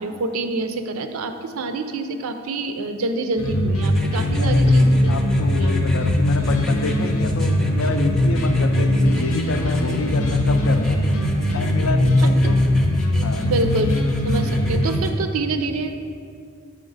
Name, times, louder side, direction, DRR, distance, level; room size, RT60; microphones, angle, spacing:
voice 1, 0.0-5.2 5.6-5.7 13.4-14.0 14.2-16.0, right 2 dB, 80° right, 7 dB, 0.5 m, -26 dB
sound 1, 3.4-15.0, left 1 dB, 90° left, 0.8 m, -20 dB
sound 2, 3.8-15.1, left 1 dB, ahead, 0.5 m, -39 dB
voice 2, 4.2-11.1 11.5-12.6 13.2-13.5, left 3 dB, 70° left, 7 dB, 0.5 m, -28 dB
6.4 x 5.0 x 3.9 m, 2.3 s
head